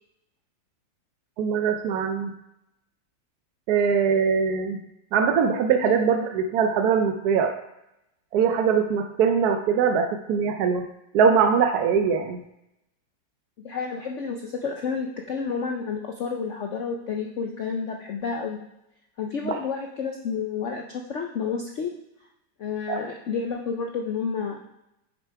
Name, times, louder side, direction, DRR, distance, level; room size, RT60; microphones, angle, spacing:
voice 1, 1.4-2.3 3.7-4.8 5.1-7.5 8.3-10.9 11.1-12.4 19.4-19.6 22.9-23.0, right 6 dB, 70° right, 5 dB, 1.0 m, -22 dB
voice 2, 13.6-18.6 19.2-21.9 22.6-24.6, left 5 dB, 70° left, 2 dB, 0.7 m, -30 dB
6.8 x 6.7 x 4.6 m, 0.85 s
omnidirectional pair, 2.0 m